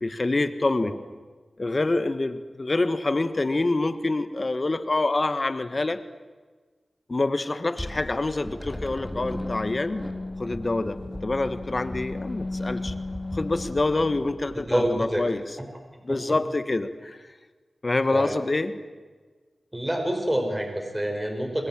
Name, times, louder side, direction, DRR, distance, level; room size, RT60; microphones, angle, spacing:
voice 1, 0.0-1.0 1.6-6.0 7.1-10.0 10.4-12.9 13.3-15.4 16.0-17.2 17.8-18.8, left 2 dB, 45° left, 12 dB, 1.5 m, -26 dB
sound 1, 7.8-15.1, left 2 dB, 10° left, 4.7 m, -35 dB
voice 2, 14.7-15.3 15.6-15.7 18.1-18.3 19.7-21.7, right 1 dB, 15° right, 4 dB, 5.8 m, -27 dB
28.5 x 24.5 x 7.7 m, 1.4 s
cardioid pair, 55°, 0 cm